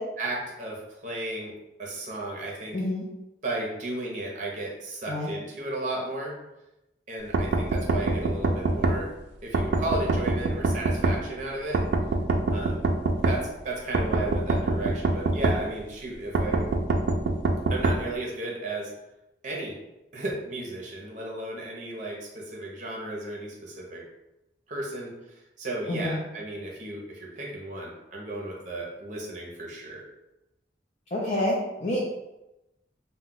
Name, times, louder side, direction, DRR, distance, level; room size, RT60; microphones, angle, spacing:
voice 1, 0.2-1.5 1.8-2.8 3.4-6.3 7.1-9.1 9.4-11.8 12.5-12.8 13.2-16.7 17.7-18.9 19.4-19.7 20.1-24.0 24.7-25.1 25.6-30.0, right 2 dB, 45° right, -2 dB, 0.6 m, -34 dB
voice 2, 2.7-3.0 5.1-5.3 25.9-26.2 31.1-32.0, left 1 dB, 40° left, -5 dB, 0.5 m, -28 dB
sound 1, 7.3-9.0 9.5-11.2 11.7-13.4 13.9-15.6 16.3-18.0, right 2 dB, 75° right, 0.3 m, -24 dB
2.2 x 2.1 x 3.7 m, 0.94 s
head